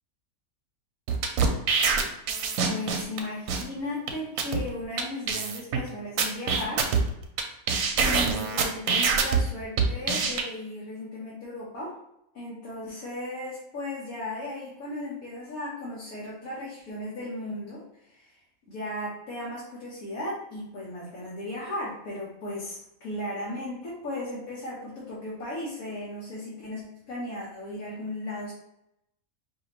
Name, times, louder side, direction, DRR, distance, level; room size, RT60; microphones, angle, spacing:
sound 1, 1.1-3.2 3.5-3.6 4.1-4.2 4.4-4.6 5.0-5.1 5.3-5.8 6.2-7.4 7.7-9.4 9.8-10.4, right 5 dB, 85° right, 1.2 m, -24 dB
voice 1, 2.6-6.8 8.0-11.9 12.3-18.4 18.7-28.5, left 1 dB, 75° left, -7 dB, 1.5 m, -36 dB
4.9 x 2.8 x 3.0 m, 0.81 s
omnidirectional pair, 1.5 m